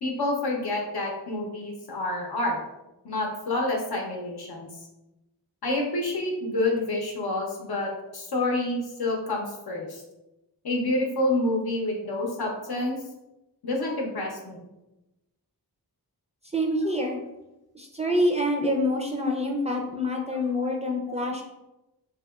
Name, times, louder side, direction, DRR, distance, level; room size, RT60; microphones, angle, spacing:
voice 1, 0.0-2.6 3.0-4.7 5.6-10.0 10.6-13.0 13.6-14.6, left 2 dB, 70° left, 0 dB, 0.7 m, -28 dB
voice 2, 16.5-17.2 17.7-21.4, left 1 dB, 15° right, 0 dB, 0.4 m, -26 dB
2.8 x 2.8 x 2.3 m, 0.97 s
wide cardioid pair, 50°, 40 cm